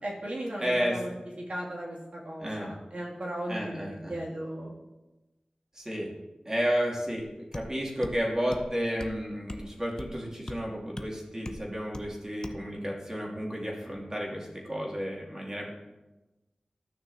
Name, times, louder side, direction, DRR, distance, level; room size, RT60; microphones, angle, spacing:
voice 1, 0.0-1.1 1.4-4.7, right 1 dB, 60° right, -4 dB, 2.6 m, -36 dB
voice 2, 0.6-1.0 2.4-2.7 3.5-4.1 5.7-6.1 6.4-15.7, equal, 25° right, -3 dB, 2.7 m, -32 dB
sound 1, 7.5-7.7 8.0-8.2 8.5-8.7 9.0-9.2 9.5-9.7 10.0-10.2 10.5-10.6 11.0-11.1 11.5-11.6 11.9-12.1 12.4-12.6, left 1 dB, 30° left, 0.7 m, -40 dB
14.0 x 6.1 x 2.8 m, 1.1 s
cardioid pair, 45°, 2 cm